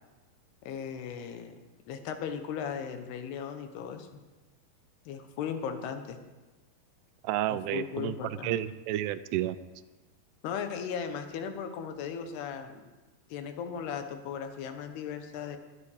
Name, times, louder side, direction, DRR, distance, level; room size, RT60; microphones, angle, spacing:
voice 1, 0.6-1.6 1.9-4.2 5.1-6.2 7.5-8.5 10.4-12.9 13.3-15.6, left 7 dB, 80° left, 7 dB, 3.1 m, -37 dB
voice 2, 7.2-8.2 8.4-9.6, right 13 dB, 85° right, 14 dB, 2.7 m, -30 dB
21.0 x 10.0 x 5.0 m, 1.2 s
omnidirectional pair, 4.7 m